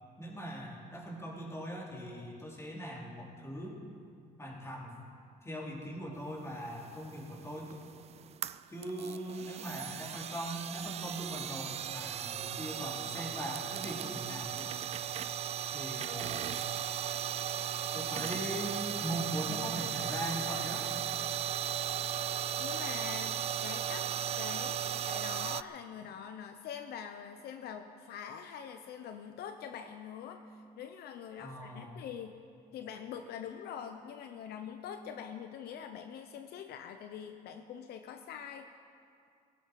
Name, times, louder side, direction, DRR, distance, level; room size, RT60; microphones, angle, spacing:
voice 1, 0.2-3.8 4.4-5.0 5.4-7.8 8.7-14.7 15.7-16.6 17.9-20.8 31.4-32.0, equal, 15° left, -3 dB, 3.8 m, -40 dB
sound 1, 6.8-25.6, right 9 dB, 40° right, 0.4 m, -36 dB
voice 2, 22.6-32.4 32.7-38.7, left 8 dB, 70° left, 7 dB, 0.8 m, -44 dB
17.5 x 16.5 x 4.7 m, 2.3 s
cardioid pair, 110°, 17 cm